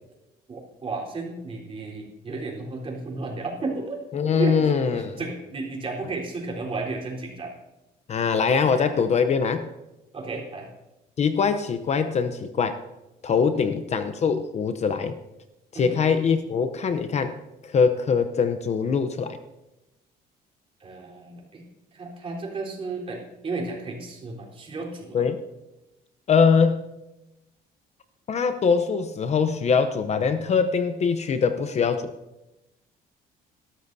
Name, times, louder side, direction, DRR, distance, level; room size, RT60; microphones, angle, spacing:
voice 1, 0.5-4.0 4.4-7.5 8.7-8.9 10.1-10.7 13.5-13.7 15.7-16.0 20.8-21.6 21.9-25.2, right 3 dB, 35° right, -2 dB, 4.0 m, -33 dB
voice 2, 4.1-5.2 8.1-9.7 11.2-12.8 13.2-15.2 15.7-17.3 17.6-19.4 25.1-25.4 26.3-26.9 28.3-32.1, left 6 dB, 40° left, 10 dB, 0.8 m, -22 dB
20.0 x 13.0 x 2.7 m, 0.97 s
cardioid pair, 110°, 17 cm